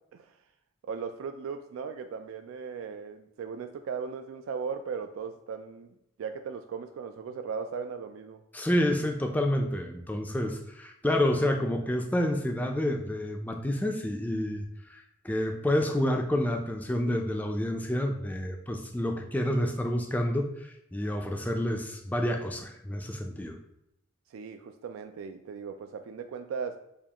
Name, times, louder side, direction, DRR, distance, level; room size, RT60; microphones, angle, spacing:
voice 1, 0.8-5.9 6.2-8.4 24.3-26.8, right 6 dB, 90° right, 7 dB, 0.3 m, -37 dB
voice 2, 8.5-23.6, left 1 dB, 10° left, 3 dB, 0.3 m, -29 dB
6.9 x 2.4 x 2.9 m, 0.82 s
head